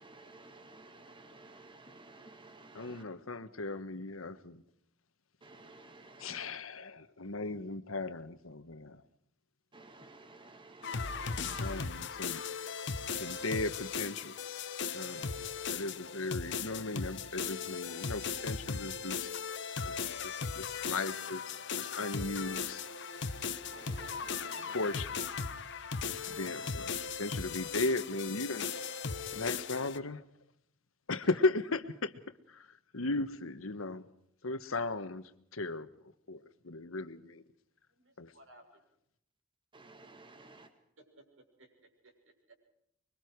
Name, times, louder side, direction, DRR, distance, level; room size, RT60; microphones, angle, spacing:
voice 1, 0.0-3.0 5.4-6.6 9.7-11.9 13.2-13.4 23.7-24.8 26.2-26.7 39.7-40.7, right 2 dB, 25° right, 2.1 m, -54 dB
voice 2, 2.7-4.6 6.2-9.0 11.6-12.4 13.1-14.6 14.9-15.4 15.7-19.3 19.8-19.9 20.2-22.8 24.7-25.1 26.3-28.7 29.3-30.2 31.1-32.1 32.9-34.0 34.4-35.2 35.5-35.9 36.3-37.4 38.2-38.3, left 2 dB, 90° left, 1.4 m, -36 dB
sound 1, 10.8-30.0, left 5 dB, 60° left, 1.3 m, -38 dB
voice 3, 37.9-38.8 40.4-40.5 41.0-42.5, right 1 dB, 70° right, 6.7 m, -61 dB
25.0 x 23.5 x 4.8 m
head